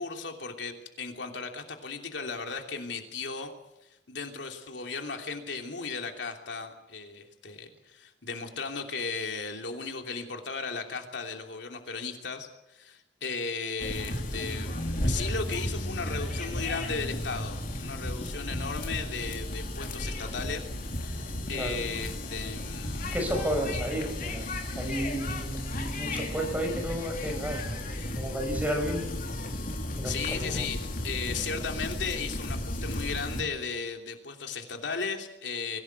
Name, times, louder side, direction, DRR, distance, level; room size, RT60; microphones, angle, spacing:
voice 1, 0.0-3.5 4.1-23.0 23.7-23.8 30.0-35.8, left 4 dB, 85° left, 3 dB, 3.0 m, -36 dB
sound 1, 13.8-33.4, left 1 dB, 50° left, 3.4 m, -34 dB
voice 2, 23.1-24.5 24.8-27.8 28.1-29.0 30.0-30.6, equal, 10° right, 3 dB, 6.0 m, -32 dB
24.5 x 17.0 x 8.2 m, 0.90 s
head